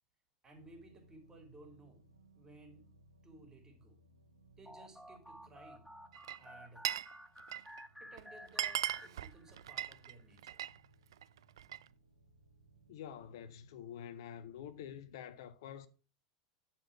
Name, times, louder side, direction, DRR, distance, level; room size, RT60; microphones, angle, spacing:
voice 1, 0.4-2.0 2.3-2.9 3.2-4.0 4.6-5.9 6.4-6.9 8.0-10.6, right 2 dB, 20° right, 3.2 m, -58 dB
sound 1, 0.5-15.2, right 2 dB, 90° right, 1.1 m, -66 dB
sound 2, 4.7-9.8, equal, ahead, 0.6 m, -53 dB
Glass, 6.1-7.1 7.4-7.8 8.2-8.3 8.5-10.8 11.1-11.9, right 11 dB, 70° right, 0.3 m, -38 dB
voice 2, 12.9-15.9, left 9 dB, 60° left, 0.7 m, -47 dB
10.0 x 4.5 x 5.7 m
figure-of-eight pair, 80°, 3 cm